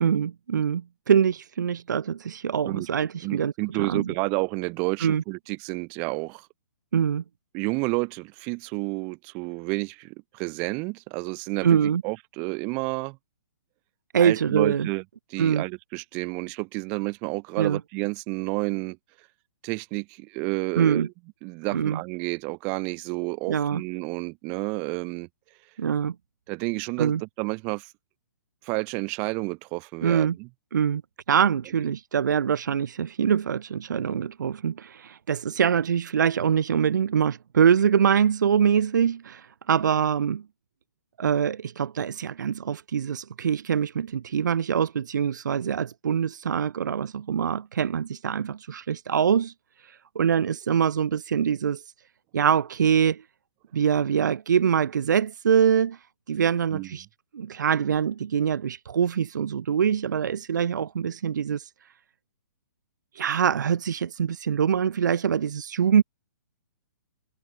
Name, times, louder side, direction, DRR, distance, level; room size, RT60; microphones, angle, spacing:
voice 1, 0.0-3.5 3.8-4.1 5.0-5.2 6.9-7.2 11.6-12.0 14.1-14.9 15.4-15.6 17.6-17.8 20.8-21.1 21.7-22.0 23.5-23.8 25.8-26.1 27.0-27.2 30.0-30.4 30.7-31.0 31.3-40.4 41.2-49.5 49.8-51.8 52.3-53.2 53.7-56.0 56.3-57.1 57.3-61.7 63.1-66.0, right 8 dB, 65° right, 0.6 m, -24 dB
voice 2, 3.2-6.5 7.5-11.8 12.0-13.2 14.2-15.0 15.3-19.0 19.6-21.1 21.4-25.3 26.5-27.9 28.6-30.5 56.7-56.9, right 31 dB, 15° right, 0.5 m, -30 dB
hypercardioid pair, 180°, 11 cm